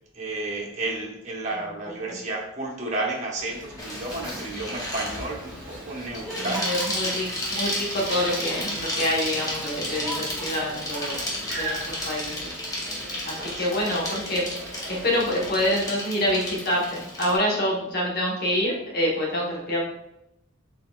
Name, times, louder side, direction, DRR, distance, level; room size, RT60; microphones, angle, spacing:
voice 1, 0.1-6.7 13.4-13.9, right 2 dB, 35° right, -2 dB, 0.8 m, -32 dB
sound 1, 3.4-15.8, right 1 dB, 5° right, 1.1 m, -39 dB
Bicycle, 3.8-17.4, left 1 dB, 15° left, 0.7 m, -33 dB
voice 2, 6.4-11.2 11.6-12.4 13.2-19.8, left 1 dB, 45° left, -2 dB, 1.0 m, -26 dB
4.1 x 3.7 x 2.3 m, 0.85 s
head